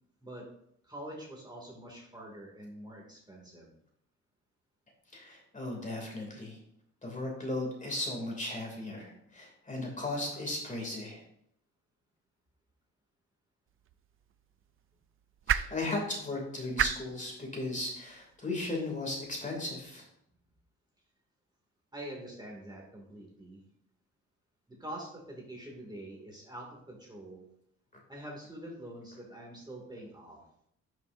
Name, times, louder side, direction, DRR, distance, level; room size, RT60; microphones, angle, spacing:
voice 1, 0.8-3.7 21.9-23.6 24.7-27.5 28.1-30.4, right 1 dB, 15° right, -1 dB, 2.3 m, -45 dB
voice 2, 5.1-6.6 7.0-11.2 15.5-20.0, left 2 dB, 25° left, 0 dB, 2.6 m, -36 dB
sound 1, 13.7-19.9, right 10 dB, 45° right, 0.4 m, -38 dB
11.0 x 6.2 x 2.6 m, 0.73 s
cardioid pair, 90°, 30 cm